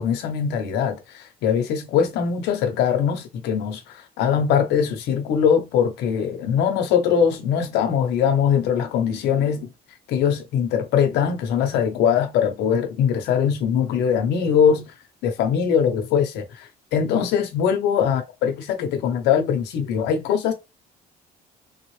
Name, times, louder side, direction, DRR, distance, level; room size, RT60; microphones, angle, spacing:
voice 1, 0.0-9.7 10.1-14.8 15.2-20.5, left 7 dB, 85° left, 0.9 m, -22 dB
3.5 x 2.4 x 3.1 m
cardioid pair, 110°, 17 cm